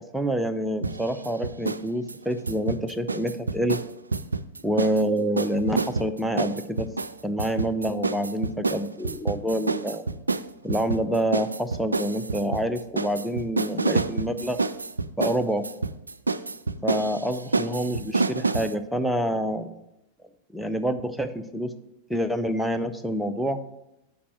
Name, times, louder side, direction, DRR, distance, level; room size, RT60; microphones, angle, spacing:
voice 1, 0.0-3.8 4.6-6.9 7.2-10.0 10.6-14.6 15.2-15.7 16.8-19.7 20.5-21.7 22.1-23.6, right 1 dB, ahead, 8 dB, 0.6 m, -27 dB
sound 1, 0.8-5.0 5.4-18.7, right 3 dB, 80° right, 0.3 m, -28 dB
8.4 x 5.3 x 5.9 m, 0.88 s
figure-of-eight pair, 90°, 0 cm